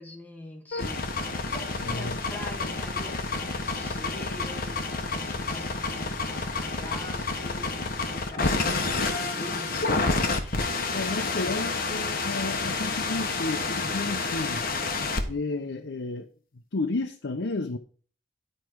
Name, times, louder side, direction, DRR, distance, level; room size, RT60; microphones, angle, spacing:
voice 1, 0.0-9.8, left 1 dB, 10° left, 2.1 m, -44 dB
sound 1, 0.7-15.2, left 3 dB, 55° left, 1.3 m, -29 dB
voice 2, 1.8-2.2 10.9-14.6 15.3-16.3 16.7-17.8, left 2 dB, 75° left, 0.7 m, -32 dB
10.5 x 4.9 x 4.6 m
head